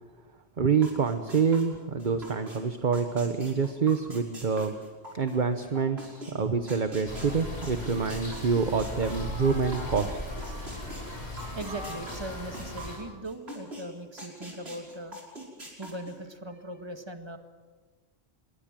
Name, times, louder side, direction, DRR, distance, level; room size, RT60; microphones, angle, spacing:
voice 1, 0.6-4.7 5.1-10.4, right 5 dB, 45° right, 8 dB, 1.2 m, -27 dB
sound 1, 0.8-2.6 2.9-10.1 10.4-13.8 14.2-16.1, right 1 dB, 70° right, 6.0 m, -43 dB
sound 2, 7.1-13.0, left 1 dB, 70° left, 7.0 m, -37 dB
voice 2, 11.5-15.2 15.8-17.4, right 1 dB, 25° right, 6 dB, 2.0 m, -39 dB
25.5 x 22.5 x 7.6 m, 1.4 s
omnidirectional pair, 1.1 m